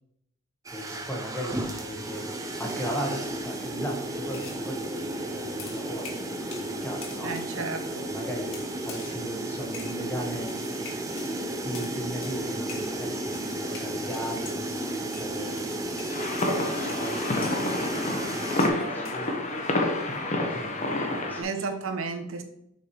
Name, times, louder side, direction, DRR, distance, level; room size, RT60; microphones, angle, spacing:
sound 1, 0.6-18.7, right 1 dB, 15° right, 0.8 m, -33 dB
voice 1, 0.7-2.3 2.6-7.3 8.0-8.6 8.8-10.5 11.6-15.9 16.3-19.5 20.2-21.5, equal, 10° left, -1 dB, 1.2 m, -37 dB
sound 2, 4.3-4.6 5.6-6.8 7.0-7.5 8.5-9.2 9.7-10.0 10.5-11.3 11.7-12.0 12.2-12.4 12.7-13.0 13.3-14.8 15.1-17.9 18.3-19.3, left 5 dB, 70° left, 1.4 m, -45 dB
voice 2, 7.2-8.0 21.4-22.4, right 4 dB, 80° right, 6 dB, 1.0 m, -32 dB
sound 3, 16.1-21.4, left 2 dB, 35° left, 1.0 m, -28 dB
6.9 x 4.8 x 4.6 m, 0.78 s
head